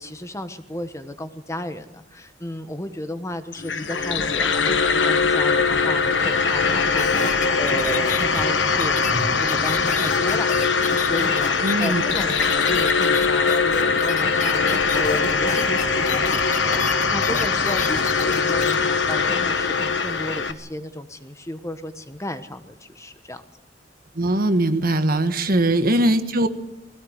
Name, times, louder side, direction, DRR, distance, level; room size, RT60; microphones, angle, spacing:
voice 1, 0.0-10.5 10.8-23.4 25.5-25.6, left 1 dB, 15° left, 9 dB, 1.2 m, -34 dB
sound 1, 3.5-20.5, left 4 dB, 80° left, 1.4 m, -21 dB
sound 2, 7.0-18.8 19.1-19.2, left 5 dB, 45° left, 1.4 m, -31 dB
voice 2, 11.6-12.0 24.1-26.5, right 1 dB, 55° right, 9 dB, 1.5 m, -20 dB
21.0 x 17.0 x 8.2 m, 0.91 s
head